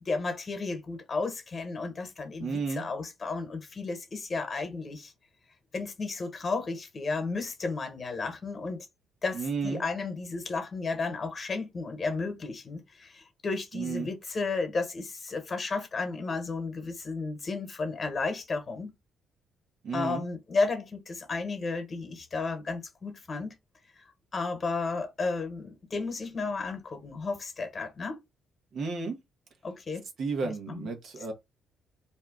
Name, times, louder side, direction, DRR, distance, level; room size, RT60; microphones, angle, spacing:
voice 1, 0.0-5.1 5.7-8.8 9.2-18.9 19.9-23.5 24.3-28.2 29.6-30.0 30.4-30.9, left 3 dB, 40° left, 1.1 m, -33 dB
voice 2, 2.4-2.8 9.3-9.8 13.7-14.1 19.8-20.2 28.7-29.2 30.2-31.3, right 4 dB, 60° right, 1.0 m, -32 dB
2.7 x 2.3 x 3.7 m
cardioid pair, 90°, 0 cm